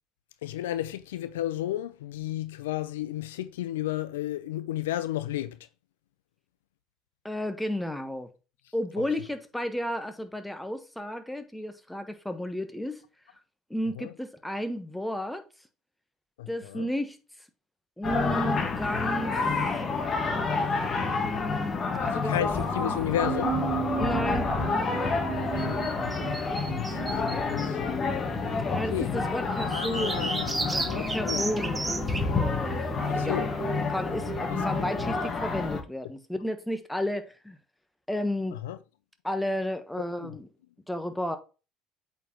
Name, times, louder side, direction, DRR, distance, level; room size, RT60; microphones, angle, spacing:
voice 1, 0.4-5.6 9.0-9.1 14.0-14.1 16.4-16.9 22.0-23.6 25.3-25.9 26.7-28.2 28.5-29.1 29.6-31.5 33.1-33.5 34.5-34.8 38.5-38.8 40.2-40.4, left 13 dB, 85° left, 0.5 m, -33 dB
voice 2, 7.2-8.3 8.7-13.0 13.7-15.4 16.5-17.2 18.0-19.4 21.1-22.5 24.0-24.5 28.7-30.3 30.7-32.7 33.2-33.4 33.9-37.6 38.1-38.6 39.2-40.5 40.9-41.4, equal, 5° left, 1.2 m, -32 dB
sound 1, 18.0-35.8, left 4 dB, 40° left, 1.7 m, -29 dB
sound 2, 22.9-35.3, right 9 dB, 50° right, 0.5 m, -38 dB
sound 3, 25.6-27.7 29.6-32.2, right 2 dB, 15° right, 1.3 m, -33 dB
8.1 x 4.5 x 3.0 m
hypercardioid pair, 70°, 0 cm